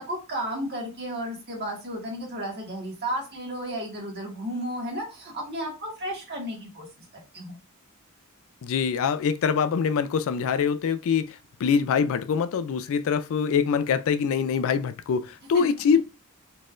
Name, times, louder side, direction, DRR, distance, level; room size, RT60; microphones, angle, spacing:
voice 1, 0.0-6.9 7.3-7.6 15.5-15.6, equal, 50° right, 1.6 m, -33 dB
voice 2, 8.6-11.3 11.6-15.2 15.5-16.0, left 6 dB, 65° left, 0.3 m, -24 dB
4.2 x 3.2 x 2.5 m
head